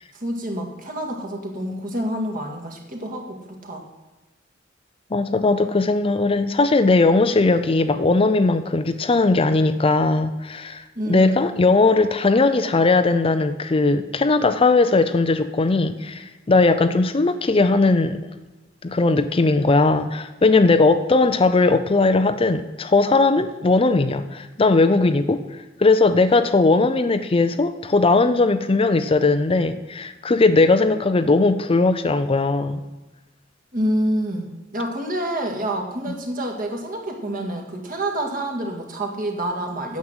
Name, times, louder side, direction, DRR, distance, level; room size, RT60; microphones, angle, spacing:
voice 1, 0.1-3.9 11.0-11.4 33.7-40.0, right 1 dB, 45° right, 2 dB, 2.0 m, -27 dB
voice 2, 5.1-18.2 18.8-32.8, left 3 dB, 30° left, 10 dB, 0.5 m, -18 dB
9.3 x 7.4 x 8.0 m, 1.1 s
head